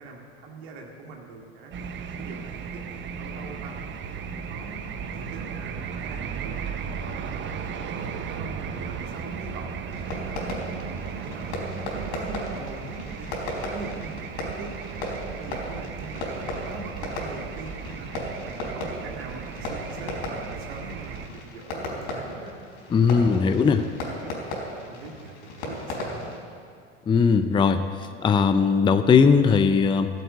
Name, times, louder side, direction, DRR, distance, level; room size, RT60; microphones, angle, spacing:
voice 1, 0.0-1.7 2.2-3.8 4.1-4.8 5.1-6.6 7.0-10.0 10.3-13.3 13.7-18.1 18.4-22.5 23.0-24.3 24.7-26.4, right 3 dB, 60° right, 0 dB, 2.1 m, -42 dB
sound 1, 1.7-21.3, right 6 dB, 35° right, 1.0 m, -35 dB
Fireworks, 9.9-26.4, left 1 dB, 60° left, 4.2 m, -36 dB
voice 2, 22.9-23.8 27.1-27.8 28.2-30.1, left 5 dB, 15° left, 9 dB, 0.5 m, -19 dB
14.5 x 8.2 x 8.2 m, 2.2 s
hypercardioid pair, 85°, 35 cm